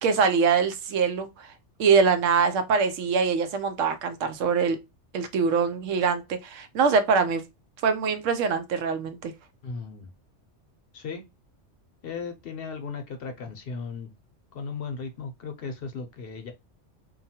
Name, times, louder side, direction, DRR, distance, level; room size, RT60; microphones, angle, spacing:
voice 1, 0.0-1.5 1.8-4.8 5.1-7.4 7.8-9.3, right 5 dB, 85° right, 1.0 m, -23 dB
voice 2, 9.6-10.1 10.9-11.3 12.0-14.1 14.5-16.5, left 5 dB, 60° left, 0.7 m, -36 dB
2.9 x 2.3 x 2.8 m
omnidirectional pair, 1.3 m